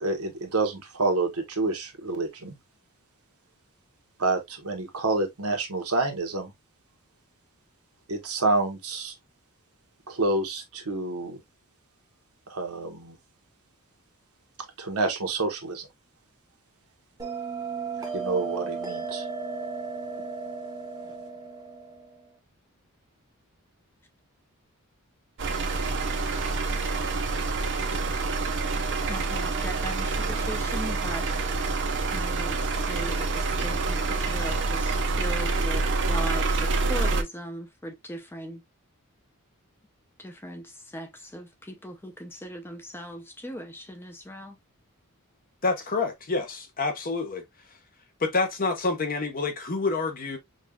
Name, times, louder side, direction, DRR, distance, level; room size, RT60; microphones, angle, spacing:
voice 1, 0.0-2.5 4.2-6.5 8.1-9.1 10.1-11.4 12.5-13.2 14.8-15.9 18.1-19.3, right 3 dB, 75° right, 1.1 m, -28 dB
Bell, 17.2-22.3, right 5 dB, 15° right, 0.9 m, -35 dB
sound 1, 25.4-37.2, right 3 dB, 55° right, 0.7 m, -27 dB
voice 2, 29.1-31.3 32.1-38.6 40.2-44.6, equal, 10° left, 0.6 m, -39 dB
voice 3, 45.6-47.4 48.2-50.4, left 3 dB, 40° left, 0.9 m, -27 dB
5.2 x 2.4 x 2.2 m
head